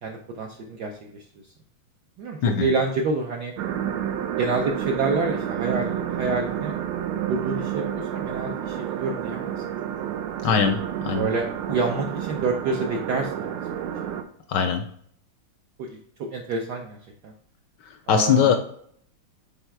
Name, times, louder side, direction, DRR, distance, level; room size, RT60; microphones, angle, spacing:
voice 1, 0.0-1.2 2.2-3.5 4.4-6.8 7.3-9.6 10.0-10.1 11.1-13.5 15.8-16.0 16.3-17.0 17.2-17.3 18.1-18.6, right 3 dB, 70° right, 1 dB, 1.0 m, -28 dB
sound 1, 3.6-14.2, right 10 dB, 85° right, 1.5 m, -30 dB
voice 2, 10.4-11.3 14.5-14.9 17.9-18.6, left 7 dB, 75° left, 7 dB, 1.0 m, -21 dB
5.7 x 4.0 x 4.5 m, 0.63 s
omnidirectional pair, 2.3 m